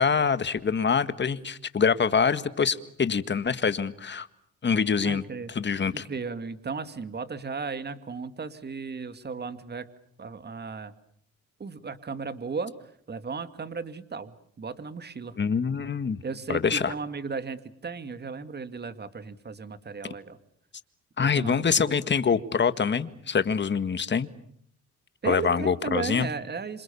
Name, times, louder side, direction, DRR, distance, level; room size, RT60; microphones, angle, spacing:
voice 1, 0.0-4.3 4.6-5.2 5.5-6.0 15.4-16.2 16.5-16.9 21.2-24.3 25.2-26.3, left 6 dB, 35° left, 12 dB, 1.8 m, -25 dB
voice 2, 5.0-5.5 5.9-9.9 10.2-10.9 11.6-12.7 13.1-15.4 16.2-20.4 21.2-21.9 25.2-26.8, right 4 dB, 35° right, 11 dB, 2.3 m, -35 dB
27.0 x 27.0 x 7.1 m, 0.66 s
cardioid pair, 90°, 30 cm